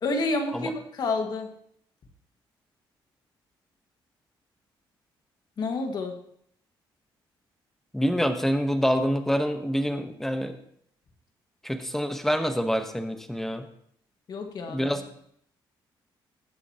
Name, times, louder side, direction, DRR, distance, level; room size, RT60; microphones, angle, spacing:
voice 1, 0.0-1.5 5.6-6.2 14.3-14.9, left 3 dB, 50° left, 4 dB, 1.9 m, -29 dB
voice 2, 7.9-10.5 11.6-13.7 14.7-15.0, equal, 5° left, 7 dB, 1.2 m, -26 dB
20.0 x 8.0 x 3.0 m, 0.67 s
cardioid pair, 120°, 9 cm